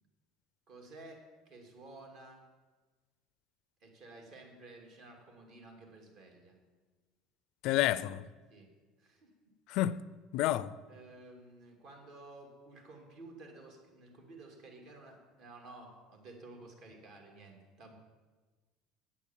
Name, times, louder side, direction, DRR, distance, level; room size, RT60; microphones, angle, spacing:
voice 1, 0.7-2.4 3.8-6.5 8.5-8.7 9.0-9.5 10.9-18.0, right 2 dB, 60° right, 2.6 m, -53 dB
voice 2, 7.6-8.2 9.7-10.0 10.3-10.7, left 14 dB, 65° left, 0.4 m, -29 dB
8.8 x 8.4 x 7.4 m
supercardioid pair, 115°, 0 cm